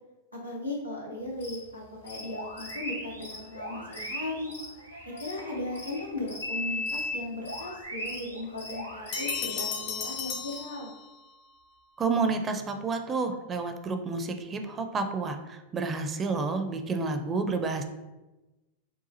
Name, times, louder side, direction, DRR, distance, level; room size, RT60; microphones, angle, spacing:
voice 1, 0.3-4.5 5.0-10.9, left 2 dB, 85° left, -3 dB, 1.0 m, -37 dB
sound 1, 1.4-1.6 2.1-2.2 2.5-4.7 5.1-5.9 6.2-6.5 6.9-7.6 8.0-8.2 8.6-9.3 9.5-10.6, left 2 dB, 65° left, 1.1 m, -44 dB
sound 2, 2.1-6.0 6.4-9.6, left 1 dB, 90° right, 1.2 m, -37 dB
Bell, 9.1-11.4, left 7 dB, 45° left, 0.4 m, -35 dB
voice 2, 12.0-17.8, right 4 dB, 20° right, 7 dB, 0.4 m, -30 dB
6.5 x 2.4 x 2.7 m, 1.1 s
figure-of-eight pair, 90°, 0 cm